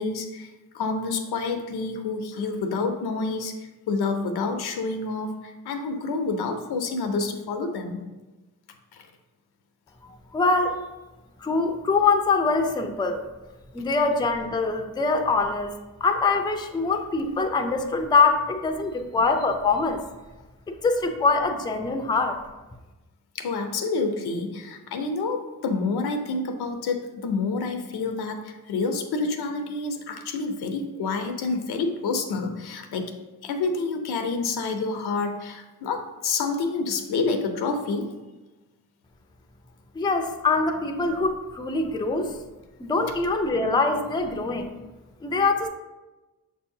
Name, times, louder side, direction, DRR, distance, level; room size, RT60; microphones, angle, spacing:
voice 1, 0.0-8.0 8.9-9.1 23.3-33.1 33.4-38.1, left 3 dB, 90° left, 5 dB, 0.6 m, -28 dB
voice 2, 10.3-10.8 11.4-13.2 13.7-20.0 20.7-22.4 40.0-42.4 42.8-44.7 45.2-45.7, left 3 dB, 10° left, 5 dB, 0.4 m, -24 dB
6.2 x 2.7 x 2.7 m, 1.1 s
cardioid pair, 75°, 37 cm